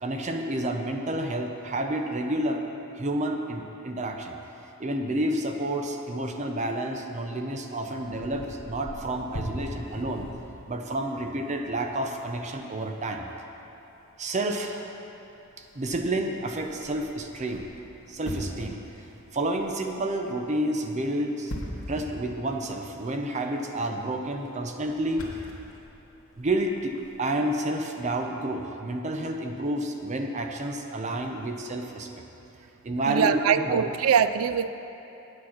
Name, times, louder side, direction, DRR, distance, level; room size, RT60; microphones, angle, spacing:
voice 1, 0.0-2.6 3.0-4.4 4.8-10.3 10.7-13.3 14.2-14.9 15.7-17.6 18.1-18.8 19.3-21.5 21.9-25.3 26.4-26.9 27.2-32.2 32.8-33.9, right 1 dB, 35° right, 3 dB, 0.6 m, -30 dB
sound 1, 8.0-27.3, left 1 dB, 70° left, 1.4 m, -44 dB
voice 2, 33.0-34.7, right 7 dB, 75° right, 12 dB, 0.3 m, -23 dB
8.8 x 7.7 x 5.8 m, 2.9 s
head